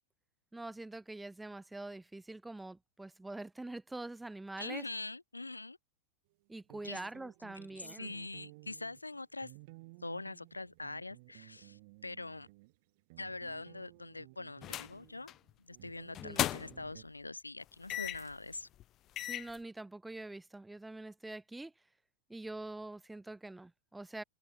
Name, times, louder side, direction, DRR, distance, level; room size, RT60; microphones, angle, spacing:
voice 1, 0.5-4.8 6.5-8.1 16.2-16.4 19.2-21.7 22.3-24.2, right 2 dB, 5° right, 1.3 m, -45 dB
voice 2, 4.6-5.8 6.8-7.0 7.7-9.5 10.0-12.5 13.2-15.3 15.6-18.7, left 2 dB, 80° left, 5.1 m, -44 dB
sound 1, 6.7-17.0, right 24 dB, 50° right, 5.5 m, -57 dB
sound 2, 14.6-15.0 15.3-15.5 16.1-16.9 17.9-18.3 18.8-18.9 19.2-19.6, left 13 dB, 35° left, 0.5 m, -36 dB
figure-of-eight pair, 90°, 0 cm